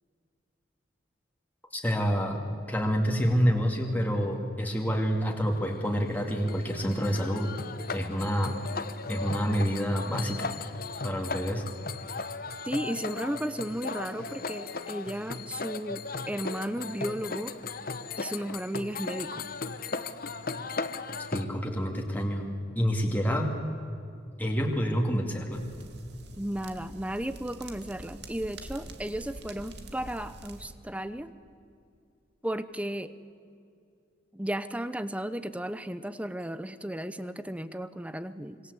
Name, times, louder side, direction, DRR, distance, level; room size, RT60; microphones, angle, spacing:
voice 1, 1.7-2.4 2.7-7.5 7.9-8.5 9.1-10.5 11.0-11.6 21.3-22.5 22.8-23.5 24.4-25.6, equal, 10° left, 1 dB, 2.5 m, -28 dB
sound 1, 5.3-21.5, left 4 dB, 50° left, 1.1 m, -37 dB
voice 2, 12.6-17.6 18.2-19.5 26.4-31.3 32.4-33.1 34.3-38.6, right 1 dB, 5° right, 13 dB, 0.8 m, -34 dB
sound 2, 25.5-30.7, right 2 dB, 60° right, 2.3 m, -46 dB
26.0 x 24.5 x 8.2 m, 2.4 s
head